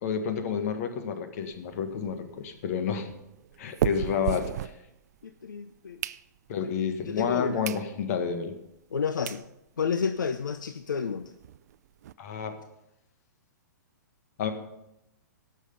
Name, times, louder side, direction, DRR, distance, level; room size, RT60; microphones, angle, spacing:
voice 1, 0.0-3.1 3.6-4.5 6.5-8.6 12.2-12.6 14.4-14.5, left 7 dB, 55° left, 7 dB, 1.7 m, -30 dB
sound 1, 1.4-5.4 5.7-6.7 7.2-7.3 7.6-7.9 8.3-8.4 9.0-9.1 9.3-9.5 9.9-10.0 10.1-10.3 10.6-10.7 11.0-12.1, right 11 dB, 60° right, 0.4 m, -35 dB
voice 2, 5.2-6.0 6.6-6.7 7.1-7.6 8.9-9.4 9.8-11.3, left 6 dB, 85° left, 9 dB, 0.6 m, -30 dB
17.5 x 6.4 x 5.3 m, 0.86 s
hypercardioid pair, 125°, 10 cm